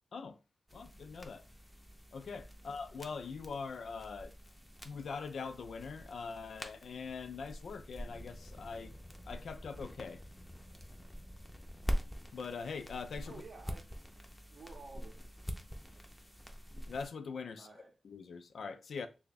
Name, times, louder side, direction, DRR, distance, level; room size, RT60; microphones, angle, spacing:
voice 1, 0.7-1.4 2.1-4.3 4.8-9.0 9.3-10.2 12.3-13.4 16.9-19.1, left 5 dB, 80° left, 0.4 m, -43 dB
sound 1, 0.7-17.1, equal, 5° left, 0.5 m, -45 dB
voice 2, 13.2-13.9 14.5-15.4 15.9-16.1 17.5-17.9, right 3 dB, 65° right, 0.6 m, -53 dB
3.3 x 2.3 x 3.9 m
wide cardioid pair, 145°, 0 cm